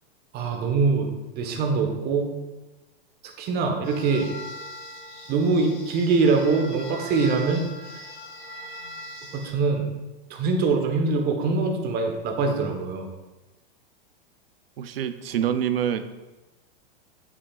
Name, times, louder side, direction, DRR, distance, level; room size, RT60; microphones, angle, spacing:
voice 1, 0.3-2.3 3.4-4.3 5.3-7.6 9.3-9.8 10.3-13.1, right 4 dB, 35° right, 3 dB, 1.2 m, -23 dB
sound 1, 3.8-9.5, left 1 dB, 80° left, 2.4 m, -41 dB
voice 2, 14.8-16.2, right 9 dB, 85° right, 11 dB, 0.7 m, -26 dB
8.6 x 7.5 x 2.4 m, 1.1 s
hypercardioid pair, 125°, 29 cm